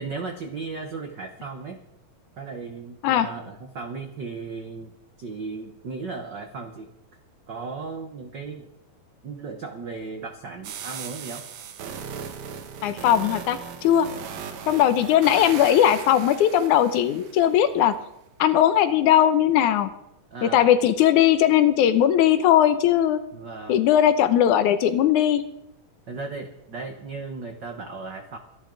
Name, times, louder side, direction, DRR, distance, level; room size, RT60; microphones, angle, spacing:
voice 1, 0.0-1.8 2.3-4.9 5.2-6.9 7.5-8.7 9.2-11.4 20.3-20.6 23.3-23.9 26.1-28.4, right 4 dB, 80° right, 5 dB, 0.9 m, -36 dB
sound 1, 10.6-17.6, right 7 dB, 65° right, 2.4 m, -38 dB
voice 2, 12.8-14.1 14.7-18.0 18.4-19.9 20.4-23.2 23.7-25.4, left 10 dB, 75° left, 11 dB, 2.1 m, -19 dB
25.0 x 10.5 x 3.9 m, 0.83 s
omnidirectional pair, 3.8 m